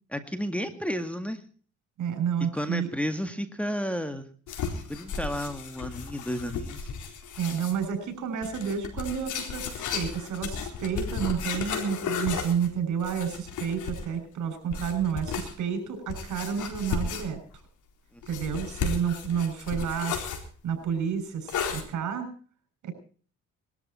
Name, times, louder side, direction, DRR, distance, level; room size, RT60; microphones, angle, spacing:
voice 1, 0.1-1.4 2.5-4.3 4.9-6.9, equal, 5° left, 8 dB, 1.9 m, -32 dB
voice 2, 2.0-2.9 7.4-17.4 18.3-20.1 20.6-22.3 22.8-22.9, right 7 dB, 75° right, 7 dB, 6.6 m, -30 dB
sound 1, 4.5-7.8 8.4-14.2 14.7-15.5 16.1-17.6 18.2-20.5 21.5-21.8, left 6 dB, 75° left, 4.1 m, -34 dB
21.0 x 13.0 x 4.2 m, 0.42 s
cardioid pair, 90°, 30 cm